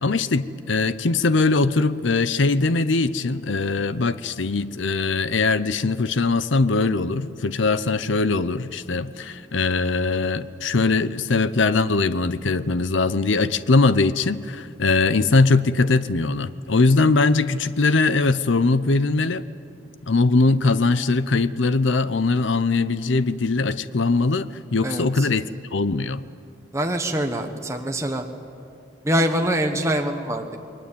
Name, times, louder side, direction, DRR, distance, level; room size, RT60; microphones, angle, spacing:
voice 1, 0.0-19.4 20.1-26.2, left 3 dB, 70° left, 14 dB, 0.7 m, -21 dB
voice 2, 24.8-25.3 26.7-28.2 29.0-30.6, right 1 dB, 15° right, 3 dB, 1.3 m, -24 dB
29.0 x 21.5 x 8.6 m, 2.4 s
head